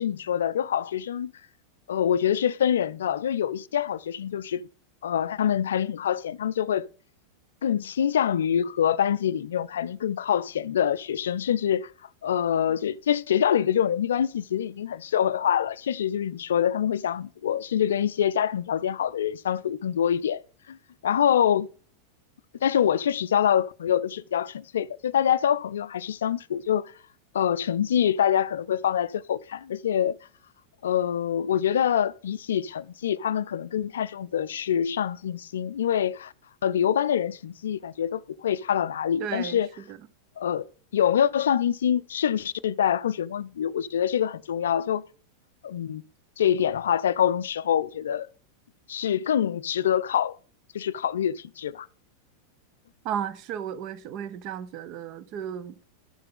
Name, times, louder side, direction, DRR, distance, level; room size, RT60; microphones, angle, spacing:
voice 1, 0.0-1.3 1.9-4.6 5.0-6.9 7.6-11.9 12.2-20.4 20.7-20.8 21.0-21.7 22.6-26.9 27.3-30.2 30.8-36.3 36.6-39.7 40.4-40.7 40.9-45.0 45.6-46.0 46.4-48.3 48.9-50.4 50.7-51.9, left 9 dB, 65° left, 0.4 m, -25 dB
voice 2, 39.2-39.6 39.9-40.0 53.0-55.8, right 9 dB, 40° right, 0.8 m, -34 dB
11.5 x 6.6 x 3.8 m
figure-of-eight pair, 90°, 0 cm